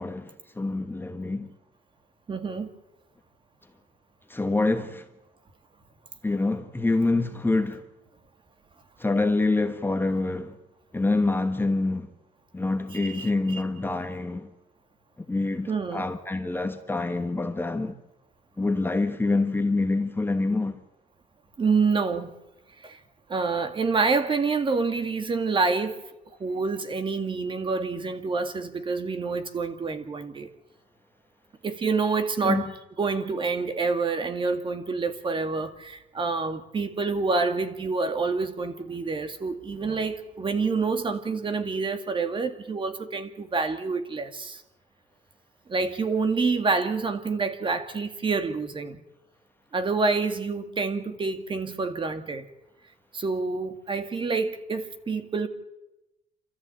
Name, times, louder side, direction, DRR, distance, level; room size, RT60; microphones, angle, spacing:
voice 1, 0.0-1.5 4.3-5.0 6.2-7.8 9.0-10.5 10.9-12.1 12.5-14.5 15.3-17.9 18.6-20.8 32.4-32.6, left 2 dB, 15° left, 1.2 m, -26 dB
voice 2, 2.3-2.7 12.9-13.6 15.7-16.0 21.6-22.3 22.8-23.0 23.3-26.0 26.4-30.5 31.6-32.7 33.0-44.6 45.7-49.0 49.7-52.5 53.1-55.5, right 4 dB, 30° right, 2.1 m, -27 dB
28.5 x 13.5 x 8.9 m
cardioid pair, 125°, 17 cm